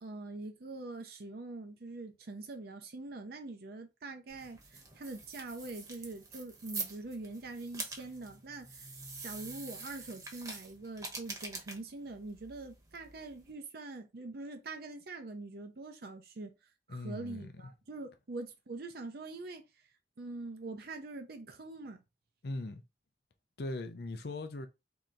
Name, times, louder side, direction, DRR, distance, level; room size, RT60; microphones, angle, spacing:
voice 1, 0.0-8.9 9.2-16.5 16.9-19.6 20.2-22.0, right 2 dB, 60° right, 0.6 m, -44 dB
sound 1, 4.3-13.5, right 3 dB, 20° right, 1.0 m, -45 dB
voice 2, 16.9-17.6 22.4-22.8 23.6-24.7, left 2 dB, 60° left, 0.6 m, -39 dB
3.2 x 2.9 x 3.8 m
head